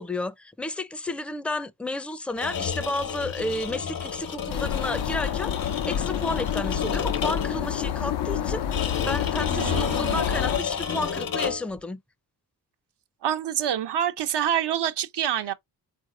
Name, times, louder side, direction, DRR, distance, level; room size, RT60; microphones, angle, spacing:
voice 1, 0.0-12.0, left 2 dB, 5° left, 0.4 m, -32 dB
sound 1, 2.3-7.7 8.7-11.8, left 7 dB, 60° left, 0.9 m, -31 dB
sound 2, 4.5-10.6, left 9 dB, 75° left, 0.6 m, -28 dB
voice 2, 9.5-10.3 13.2-15.5, right 10 dB, 85° right, 0.7 m, -27 dB
4.0 x 2.6 x 3.7 m
cardioid pair, 85°, 40 cm